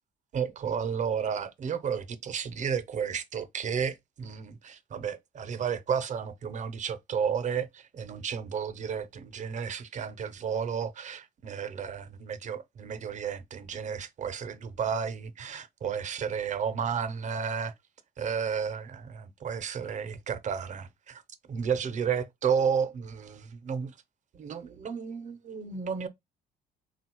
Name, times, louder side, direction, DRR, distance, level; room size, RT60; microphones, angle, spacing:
voice 1, 0.3-17.7 18.2-24.0 24.3-26.1, right 7 dB, 45° right, 0.8 m, -32 dB
3.8 x 2.4 x 4.5 m
cardioid pair, 110°, 17 cm